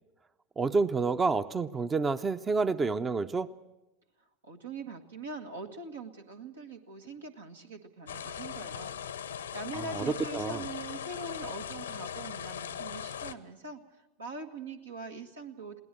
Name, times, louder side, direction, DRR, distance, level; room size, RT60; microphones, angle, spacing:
voice 1, 0.6-3.5 9.7-10.6, right 4 dB, 25° right, 12 dB, 0.6 m, -29 dB
voice 2, 4.4-9.0 9.5-13.8 14.2-15.8, right 3 dB, 85° right, 4 dB, 1.7 m, -42 dB
sound 1, 8.1-13.3, left 8 dB, 85° left, 0.8 m, -39 dB
21.5 x 17.5 x 7.6 m, 1.0 s
hypercardioid pair, 85°, 0 cm